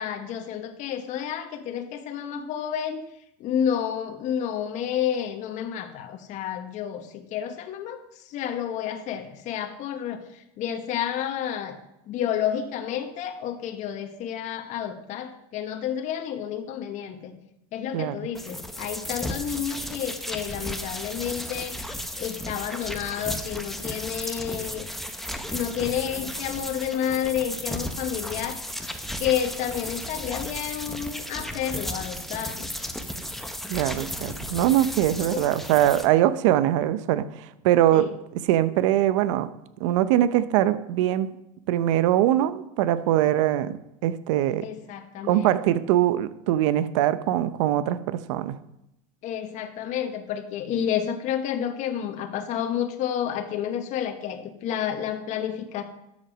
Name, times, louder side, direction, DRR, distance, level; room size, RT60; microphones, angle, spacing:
voice 1, 0.0-3.0 3.4-11.8 12.1-17.3 17.7-24.9 25.5-28.6 29.2-32.7 35.2-35.5 37.9-38.1 44.6-45.8 49.2-55.8, left 9 dB, 50° left, 6 dB, 1.4 m, -30 dB
sound 1, 18.3-36.1, equal, ahead, 1.1 m, -34 dB
voice 2, 33.7-38.1 38.4-39.5 39.8-41.3 41.7-43.8 44.0-44.7 45.3-48.6, right 12 dB, 85° right, 14 dB, 0.7 m, -22 dB
13.0 x 7.3 x 6.2 m, 0.85 s
supercardioid pair, 130°, 16 cm